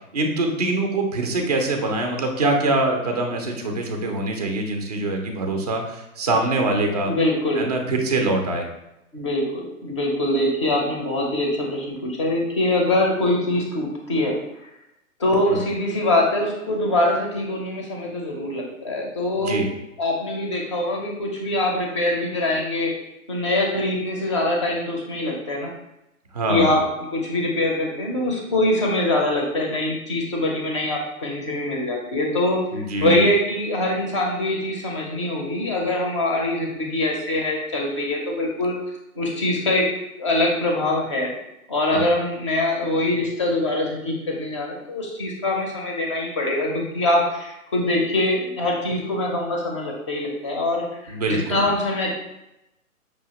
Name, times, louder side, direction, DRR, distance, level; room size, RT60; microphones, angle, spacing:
voice 1, 0.1-7.1 7.6-8.7 15.5-15.6 19.4-19.7 26.3-26.7 32.7-33.2 41.9-42.0 51.1-51.6, right 2 dB, 30° right, 3 dB, 0.4 m, -24 dB
voice 2, 7.0-7.7 9.1-14.4 15.2-19.6 20.0-22.9 23.3-25.7 26.5-38.7 39.2-39.9 40.2-41.3 41.7-52.1, left 1 dB, 20° left, 0 dB, 0.5 m, -23 dB
5.6 x 2.8 x 2.8 m, 0.90 s
hypercardioid pair, 150°, 43 cm